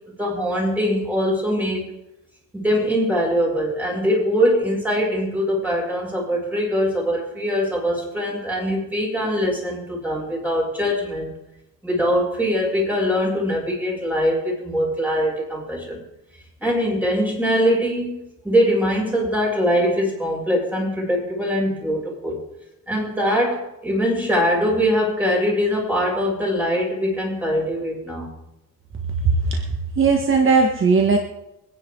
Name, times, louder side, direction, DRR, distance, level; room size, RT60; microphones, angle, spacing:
voice 1, 0.2-1.9 2.5-11.3 11.8-16.0 16.6-22.4 22.9-28.3, equal, 5° right, -4 dB, 7.6 m, -22 dB
voice 2, 29.2-29.6 30.0-31.2, right 4 dB, 40° right, 2 dB, 1.7 m, -17 dB
25.0 x 10.5 x 4.0 m, 0.88 s
cardioid pair, 110°, 32 cm